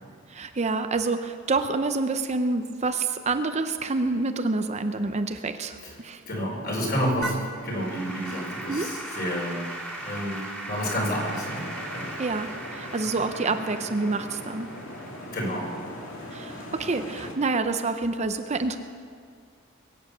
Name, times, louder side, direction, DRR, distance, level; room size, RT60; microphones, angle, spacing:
voice 1, 0.3-6.2 8.7-8.9 12.2-14.7 16.3-18.8, right 3 dB, 35° right, 8 dB, 0.6 m, -27 dB
voice 2, 6.3-9.6 10.0-12.1 15.3-15.7, equal, 45° left, -2 dB, 4.4 m, -30 dB
Applause / Keyboard (musical), 7.2-16.5, right 1 dB, 5° left, 2.2 m, -39 dB
sound 1, 10.8-17.3, left 1 dB, 75° left, 2.4 m, -40 dB
21.5 x 8.7 x 6.8 m, 2.2 s
head